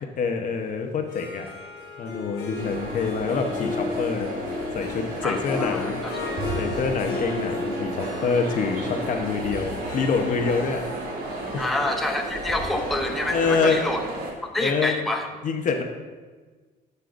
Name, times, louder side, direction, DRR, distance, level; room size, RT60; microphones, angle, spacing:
voice 1, 0.2-1.5 2.0-4.3 4.7-6.0 6.6-10.9 11.5-11.7 13.3-13.8 14.6-15.0 15.4-15.8, left 5 dB, 50° left, 5 dB, 0.9 m, -26 dB
Harp, 1.0-13.9, left 4 dB, 80° left, 1.6 m, -35 dB
sound 1, 2.5-14.3, right 2 dB, 60° right, 1.7 m, -33 dB
voice 2, 5.2-6.1 11.6-14.0 14.5-15.3, left 1 dB, ahead, 2 dB, 0.6 m, -27 dB
11.5 x 5.6 x 2.5 m, 1.4 s
cardioid pair, 110°, 17 cm